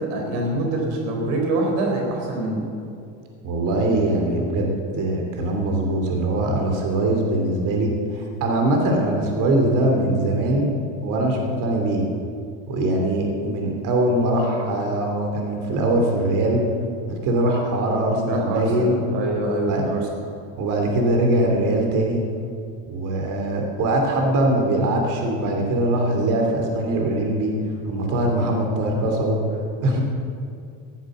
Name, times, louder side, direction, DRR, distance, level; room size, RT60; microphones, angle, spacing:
voice 1, 0.0-2.6 18.2-20.0, right 2 dB, 90° right, 1 dB, 4.0 m, -25 dB
voice 2, 3.4-10.7 11.0-12.0 12.7-16.6 17.1-19.0 19.7-19.8 20.6-22.2 22.9-27.5 27.9-29.4 29.8-30.0, right 1 dB, 60° right, 2 dB, 3.0 m, -22 dB
16.0 x 8.0 x 7.8 m, 2.4 s
cardioid pair, 125°, 35 cm